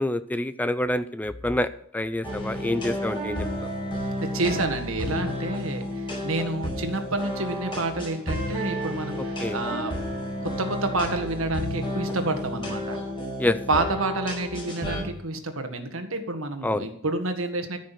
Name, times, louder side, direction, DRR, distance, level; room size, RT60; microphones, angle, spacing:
voice 1, 0.0-3.4 9.4-9.6 13.4-13.6 16.6-16.9, left 1 dB, 10° left, 12 dB, 0.4 m, -27 dB
sound 1, 2.2-15.0, left 1 dB, 25° left, 5.2 m, -31 dB
voice 2, 4.3-9.9 10.4-13.0 13.7-17.8, right 2 dB, 70° right, 7 dB, 1.7 m, -29 dB
14.5 x 6.3 x 7.5 m, 0.66 s
head